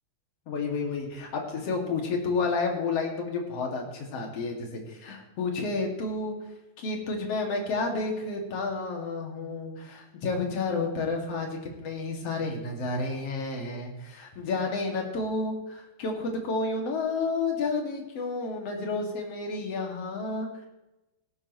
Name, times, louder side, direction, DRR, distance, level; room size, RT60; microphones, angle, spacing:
voice 1, 0.5-6.3 6.8-20.7, left 3 dB, 45° left, 1 dB, 2.8 m, -31 dB
17.0 x 12.5 x 3.1 m, 0.98 s
omnidirectional pair, 4.7 m